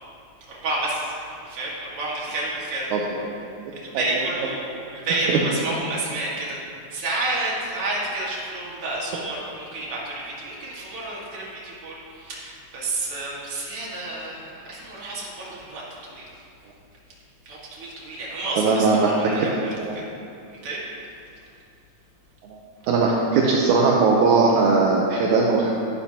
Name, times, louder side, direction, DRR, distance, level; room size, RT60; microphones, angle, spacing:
voice 1, 0.5-2.9 3.7-6.6 6.9-16.2 17.5-19.5 19.9-20.1 20.6-20.8, right 2 dB, 50° right, -6 dB, 2.7 m, -30 dB
voice 2, 2.9-3.3 5.3-5.4 18.6-19.5 19.8-19.9 22.4-22.6 22.9-25.7, right 4 dB, 75° right, -3 dB, 2.2 m, -19 dB
11.5 x 11.5 x 2.9 m, 2.5 s
omnidirectional pair, 3.6 m